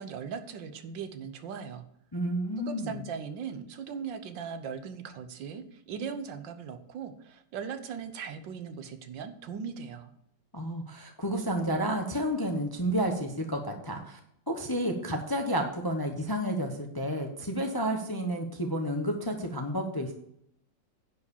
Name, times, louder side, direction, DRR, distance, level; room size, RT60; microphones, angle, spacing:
voice 1, 0.0-1.8 2.6-10.1, right 6 dB, 75° right, 9 dB, 1.6 m, -39 dB
voice 2, 2.1-3.0 10.5-14.2 14.5-20.1, equal, 20° left, 4 dB, 0.7 m, -31 dB
10.5 x 4.8 x 7.0 m, 0.73 s
omnidirectional pair, 2.0 m